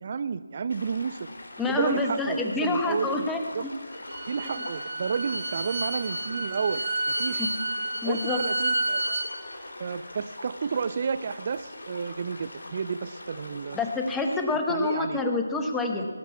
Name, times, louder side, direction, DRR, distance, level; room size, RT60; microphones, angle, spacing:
voice 1, 0.0-1.3 1.7-3.3 3.5-3.6 4.3-6.8 7.2-7.5 8.0-9.2 9.8-13.8 14.7-15.2, right 6 dB, 40° right, 14 dB, 0.4 m, -31 dB
sound 1, 0.7-14.4, left 1 dB, 70° left, 2.9 m, -43 dB
voice 2, 1.6-3.4 7.4-7.5 8.0-8.4 13.7-16.1, left 3 dB, 5° left, 3 dB, 1.0 m, -27 dB
Bowed string instrument, 3.9-9.3, right 2 dB, 65° right, 3.2 m, -30 dB
17.5 x 6.0 x 8.4 m, 1.5 s
figure-of-eight pair, 160°, 0 cm